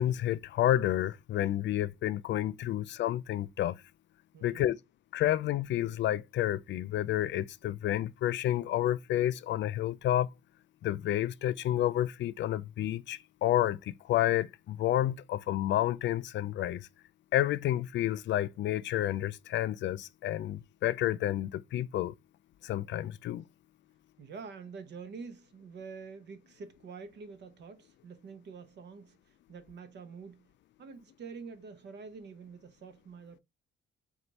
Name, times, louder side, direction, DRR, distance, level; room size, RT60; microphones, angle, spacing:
voice 1, 0.0-3.8 4.4-4.8 5.1-10.3 10.8-16.9 17.3-22.1 22.6-23.4, left 13 dB, 65° left, 0.4 m, -30 dB
voice 2, 4.3-4.7 24.2-30.5 30.8-33.4, right 5 dB, 60° right, 0.9 m, -47 dB
4.4 x 2.4 x 4.0 m
cardioid pair, 90°, 20 cm